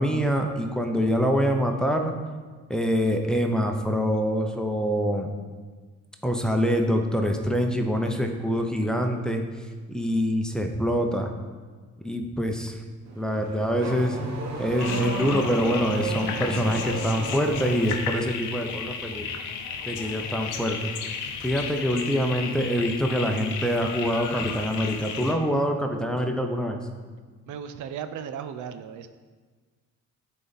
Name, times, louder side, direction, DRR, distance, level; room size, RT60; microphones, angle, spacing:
voice 1, 0.0-2.1 2.7-5.3 6.2-11.3 12.0-12.8 13.2-14.2 14.6-19.3 19.9-20.9 21.4-26.8, equal, ahead, 3 dB, 0.7 m, -25 dB
Car / Accelerating revving vroom, 13.1-18.1, right 2 dB, 60° right, 1.1 m, -33 dB
sound 1, 14.8-25.3, left 6 dB, 90° left, 0.7 m, -34 dB
voice 2, 27.5-29.1, right 8 dB, 80° right, 9 dB, 0.5 m, -36 dB
9.0 x 4.1 x 4.0 m, 1.4 s
cardioid pair, 90°, 30 cm